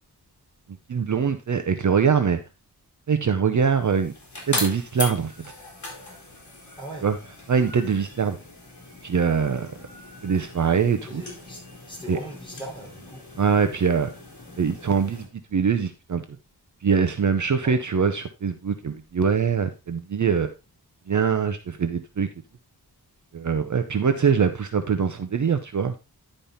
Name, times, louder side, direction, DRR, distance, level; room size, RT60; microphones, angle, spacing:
voice 1, 0.9-2.4 3.1-4.1 4.5-5.3 7.0-7.2 7.5-8.4 9.0-9.7 10.2-11.2 12.1-12.2 13.4-14.1 14.6-16.2 16.8-20.5 21.1-22.3 23.3-25.9, right 6 dB, 50° right, 0.7 m, -23 dB
sound 1, 3.6-15.3, left 2 dB, 45° left, 3.4 m, -39 dB
voice 2, 11.1-11.6 11.9-13.2 17.6-17.8, right 1 dB, 10° left, 4.3 m, -39 dB
10.5 x 5.4 x 4.0 m
wide cardioid pair, 140°, 39 cm